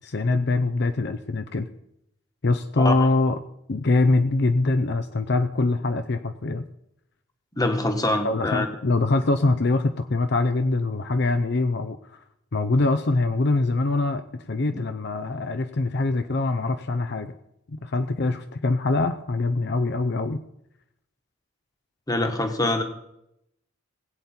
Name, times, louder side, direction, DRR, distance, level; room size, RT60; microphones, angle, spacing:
voice 1, 0.0-1.7 2.4-3.4 3.7-6.7 8.2-12.2 12.5-17.3 17.7-20.4, left 2 dB, 55° left, 9 dB, 0.6 m, -23 dB
voice 2, 7.5-8.7 14.6-14.8 22.1-22.8, left 1 dB, 20° left, 6 dB, 1.3 m, -25 dB
20.5 x 8.4 x 4.4 m, 0.80 s
head